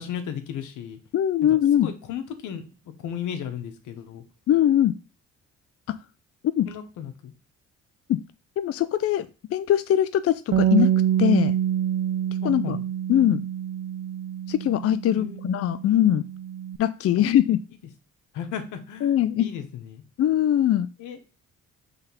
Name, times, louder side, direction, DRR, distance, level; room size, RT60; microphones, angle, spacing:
voice 1, 0.0-1.0 1.7-2.6 3.0-4.2 6.7-7.3 12.4-12.8 15.1-15.5 18.3-20.0 21.0-21.2, left 8 dB, 85° left, 8 dB, 1.1 m, -35 dB
voice 2, 1.1-1.9 4.5-5.0 5.9-6.0 6.6-6.7 8.1-8.2 8.6-10.9 11.2-11.5 12.4-12.8 13.1-13.4 14.5-16.2 16.8-17.6 19.0-19.5 20.2-20.9, left 11 dB, 50° left, 13 dB, 0.4 m, -21 dB
Bass guitar, 10.5-16.8, right 10 dB, 50° right, 0.4 m, -26 dB
5.7 x 3.5 x 5.6 m, 0.33 s
cardioid pair, 90°, 30 cm